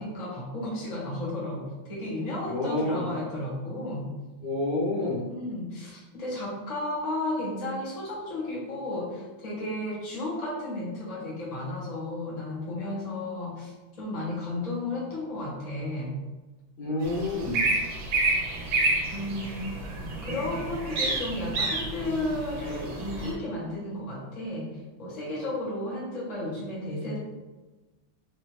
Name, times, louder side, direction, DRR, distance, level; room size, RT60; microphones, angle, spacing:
voice 1, 0.0-4.0 5.3-13.7 14.0-16.1 18.6-18.8 19.1-19.7 20.2-27.2, left 1 dB, 30° left, -6 dB, 0.8 m, -33 dB
voice 2, 2.5-3.1 4.4-5.2 16.8-17.6, left 2 dB, 55° left, -5 dB, 1.3 m, -28 dB
sound 1, 17.0-23.3, right 2 dB, 70° right, 1.5 m, -29 dB
4.2 x 3.2 x 3.2 m, 1.2 s
omnidirectional pair, 2.3 m